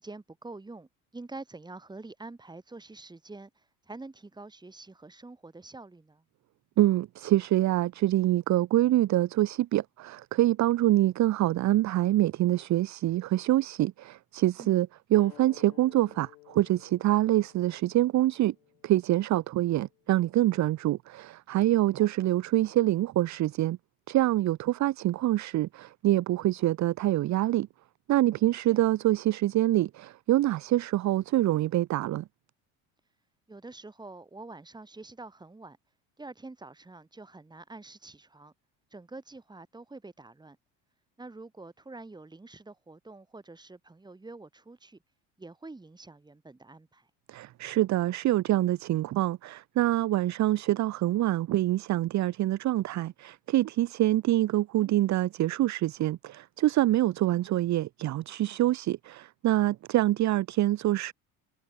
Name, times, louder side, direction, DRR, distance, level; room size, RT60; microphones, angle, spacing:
voice 1, 0.0-6.2 14.6-14.8 22.0-22.1 28.6-28.8 33.5-35.8 36.2-38.5 38.9-40.6 41.2-45.0 45.4-47.1, right 3 dB, 10° right, 1.4 m, -46 dB
voice 2, 6.8-18.5 18.8-23.8 24.1-27.7 28.1-32.2 47.3-61.1, right 15 dB, 40° right, 0.7 m, -25 dB
sound 1, 15.1-20.3, left 25 dB, 80° left, 2.9 m, -56 dB
supercardioid pair, 90°, 43 cm